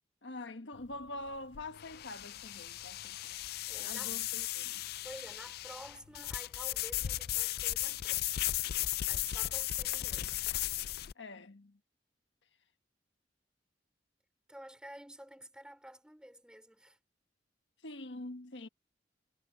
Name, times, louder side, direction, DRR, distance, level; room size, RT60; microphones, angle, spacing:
voice 1, 0.2-3.4 3.8-4.9 11.1-11.8 17.8-18.7, left 2 dB, 85° left, 1.4 m, -45 dB
sound 1, 0.8-11.1, left 14 dB, 60° left, 0.4 m, -36 dB
voice 2, 3.7-4.2 5.0-8.6 9.1-10.5 14.5-17.0, right 1 dB, 5° right, 3.9 m, -51 dB
head